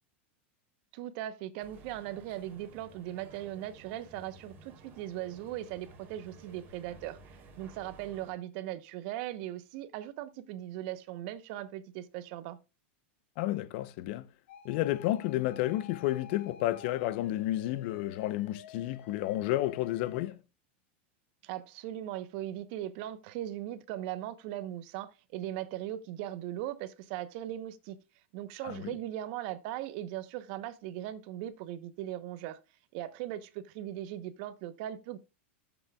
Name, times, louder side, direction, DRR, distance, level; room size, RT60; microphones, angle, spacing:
voice 1, 0.9-7.2 7.6-12.6 21.4-28.0 28.3-32.6 32.9-35.2, right 13 dB, 55° right, 0.9 m, -39 dB
sound 1, 1.6-8.3, right 3 dB, 30° right, 3.0 m, -54 dB
voice 2, 13.4-14.2 14.6-20.3 28.6-28.9, left 15 dB, 55° left, 0.7 m, -31 dB
sound 2, 14.5-20.3, left 8 dB, 85° left, 1.8 m, -51 dB
16.5 x 7.1 x 2.3 m
supercardioid pair, 135°, 7 cm